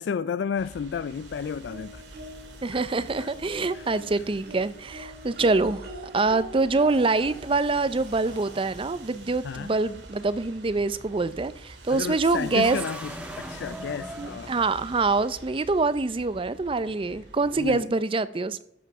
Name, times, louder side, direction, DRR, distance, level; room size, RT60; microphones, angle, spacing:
voice 1, 0.0-2.0 2.7-2.8 3.2-3.3 3.7-4.0 9.4-9.7 11.9-14.5 17.6-17.9, left 6 dB, 75° left, 0.3 m, -32 dB
sound 1, 0.6-17.8, right 2 dB, 85° right, 2.2 m, -47 dB
sound 2, 1.7-2.6 3.1-8.8 10.0-10.1 10.4-10.5, right 1 dB, 60° right, 2.0 m, -44 dB
voice 2, 2.6-5.9 6.1-12.8 14.2-18.6, right 3 dB, 30° right, 0.5 m, -25 dB
sound 3, 12.4-15.4, right 1 dB, 5° right, 1.4 m, -40 dB
13.0 x 5.8 x 6.0 m
head